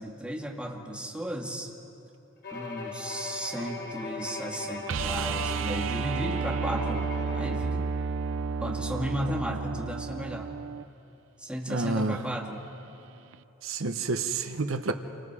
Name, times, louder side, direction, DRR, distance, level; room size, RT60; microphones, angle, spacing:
voice 1, 0.0-1.7 2.5-7.1 7.3-7.9 8.6-10.5 11.4-12.6, equal, 5° right, -1 dB, 2.0 m, -34 dB
Bowed string instrument, 2.4-7.8, left 3 dB, 55° left, 3.8 m, -39 dB
sound 1, 4.9-10.8 13.3-13.4, right 5 dB, 70° right, 0.5 m, -31 dB
voice 2, 11.7-12.2 13.6-14.9, right 3 dB, 90° right, 8 dB, 1.0 m, -29 dB
28.5 x 24.5 x 4.9 m, 2.9 s
head